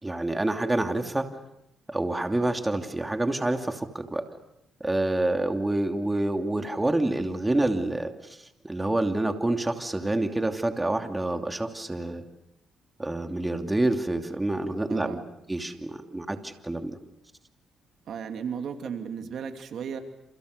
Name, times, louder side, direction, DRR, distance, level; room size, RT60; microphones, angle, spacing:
voice 1, 0.0-1.3 1.9-4.3 4.8-8.4 8.6-12.2 13.0-15.2 15.5-17.0, right 2 dB, 15° right, 5 dB, 2.8 m, -27 dB
voice 2, 14.9-15.2 18.1-20.0, right 7 dB, 65° right, 6 dB, 2.8 m, -35 dB
29.5 x 29.0 x 6.8 m, 0.81 s
cardioid pair, 90°, 0 cm